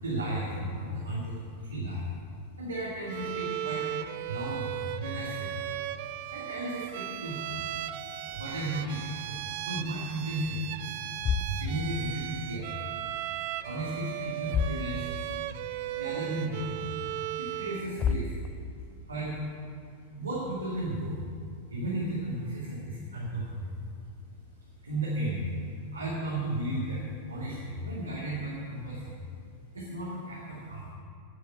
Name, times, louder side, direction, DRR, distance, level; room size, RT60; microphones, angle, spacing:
voice 1, 0.0-2.1 2.6-5.5 6.3-7.6 8.3-9.4 9.6-11.0 11.5-12.7 13.6-15.3 16.0-16.9 17.4-18.4 19.1-19.4 20.1-21.2 21.7-23.7 24.8-29.2 29.7-30.9, right 1 dB, 75° right, -6 dB, 2.5 m, -34 dB
Bowed string instrument, 3.1-17.9, right 14 dB, 50° right, 0.5 m, -37 dB
sound 1, 8.3-9.9 10.2-10.5 11.0-12.9 13.1-13.8 14.1-14.2 14.4-15.5 15.8-15.9 16.5-16.6 17.6-17.7 18.0-19.0, left 5 dB, 30° left, 0.7 m, -34 dB
10.5 x 9.6 x 9.3 m, 2.3 s
figure-of-eight pair, 90°, 0 cm